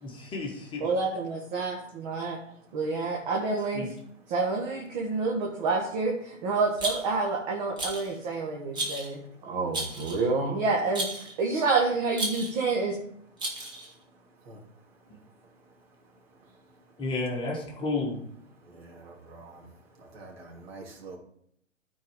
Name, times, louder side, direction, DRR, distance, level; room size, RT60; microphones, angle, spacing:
voice 1, 0.0-0.9 3.7-3.9 17.0-18.2, left 3 dB, 15° left, -2 dB, 1.6 m, -32 dB
voice 2, 0.8-2.4 2.7-3.9 4.3-9.2 9.5-11.1 11.4-13.0, right 3 dB, 35° right, -1 dB, 1.5 m, -28 dB
Rattle, 6.8-7.3 7.8-8.1 8.7-9.1 9.7-10.3 10.9-11.3 12.1-12.6 13.4-13.9, right 1 dB, 10° right, 1.4 m, -33 dB
voice 3, 19.0-19.6 20.1-21.2, right 3 dB, 50° right, 0 dB, 2.7 m, -45 dB
13.5 x 4.6 x 3.6 m, 0.72 s
figure-of-eight pair, 120°, 38 cm